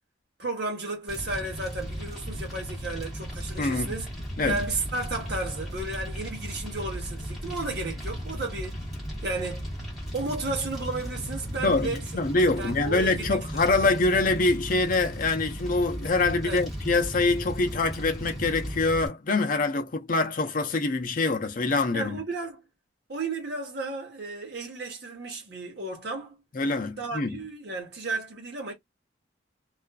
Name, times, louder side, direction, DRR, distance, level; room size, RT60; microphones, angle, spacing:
voice 1, 0.4-4.1 4.4-8.8 9.2-9.6 10.1-12.0 12.6-13.8 16.4-16.7 21.9-22.6 23.1-26.4 27.0-28.7, right 3 dB, 60° right, 1.0 m, -33 dB
Fire, 1.1-19.1, equal, ahead, 1.1 m, -36 dB
voice 2, 3.6-4.0 4.4-4.6 11.6-22.2 26.5-27.4, left 3 dB, 45° left, 0.5 m, -25 dB
2.4 x 2.3 x 2.2 m
head